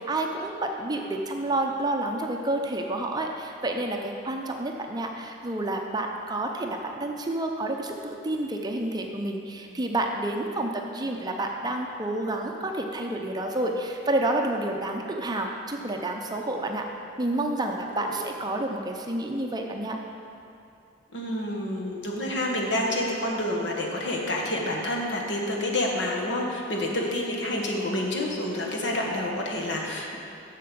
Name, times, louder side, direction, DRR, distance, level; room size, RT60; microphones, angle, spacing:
voice 1, 0.0-16.9 17.2-20.0, right 1 dB, 20° right, 2 dB, 0.6 m, -29 dB
voice 2, 21.1-30.2, left 1 dB, 65° left, -1 dB, 1.4 m, -28 dB
8.0 x 6.6 x 6.9 m, 2.6 s
head